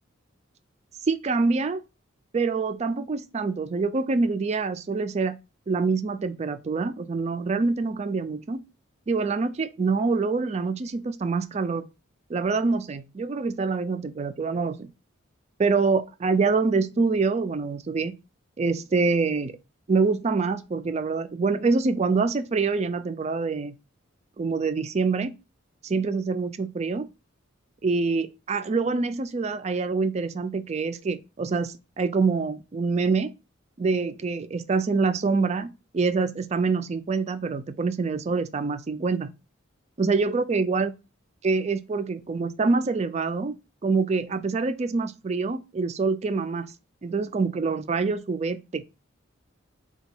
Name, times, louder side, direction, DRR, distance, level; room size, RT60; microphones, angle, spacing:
voice 1, 1.1-1.8 2.3-5.4 5.7-8.6 9.1-11.9 12.3-14.9 15.6-18.1 18.6-19.5 19.9-23.8 24.4-25.3 25.8-27.1 27.8-33.3 33.8-39.3 40.0-40.9 41.4-43.5 43.8-46.7 47.0-48.8, right 4 dB, 35° right, 0.3 m, -25 dB
3.9 x 2.3 x 4.3 m
head